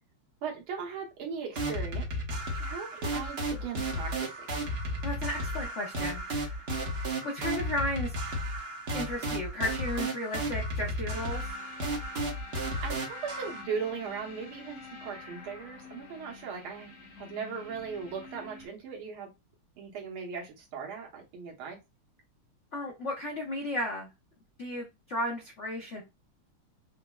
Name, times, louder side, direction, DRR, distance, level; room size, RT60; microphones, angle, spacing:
voice 1, 0.4-2.1 2.4-4.6 12.8-19.3 19.8-21.8, right 6 dB, 75° right, 1.8 m, -38 dB
sound 1, 1.5-13.6, right 1 dB, 50° right, 0.7 m, -33 dB
voice 2, 5.0-6.6 7.2-8.1 8.9-11.5 22.7-24.1 24.6-26.0, left 1 dB, 75° left, 0.6 m, -34 dB
sound 2, 11.1-18.7, left 3 dB, 90° left, 2.1 m, -48 dB
5.8 x 2.0 x 2.2 m
omnidirectional pair, 2.4 m